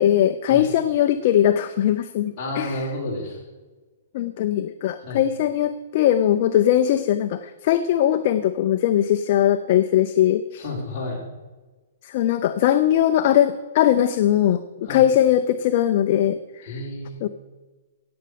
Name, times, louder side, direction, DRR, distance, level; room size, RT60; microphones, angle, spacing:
voice 1, 0.0-2.9 4.1-10.6 12.0-16.8 17.2-17.3, left 11 dB, 35° left, 9 dB, 0.6 m, -20 dB
voice 2, 2.4-3.4 5.0-5.2 10.6-11.3 14.8-15.0 16.7-17.1, left 1 dB, 20° left, -6 dB, 5.2 m, -30 dB
17.5 x 7.6 x 6.9 m, 1.3 s
hypercardioid pair, 170°, 0 cm